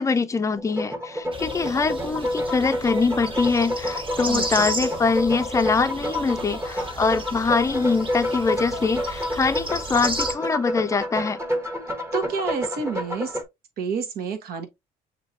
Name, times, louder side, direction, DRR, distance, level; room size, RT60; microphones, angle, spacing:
voice 1, 0.0-11.4, left 4 dB, 20° left, 0.5 m, -23 dB
sound 1, 0.6-13.4, left 1 dB, 15° right, 1.1 m, -29 dB
sound 2, 1.3-10.3, right 1 dB, 30° right, 1.4 m, -34 dB
voice 2, 4.3-4.7 12.1-13.4 13.8-14.7, right 5 dB, 70° right, 1.2 m, -29 dB
7.0 x 2.8 x 2.7 m
cardioid pair, 110°, 17 cm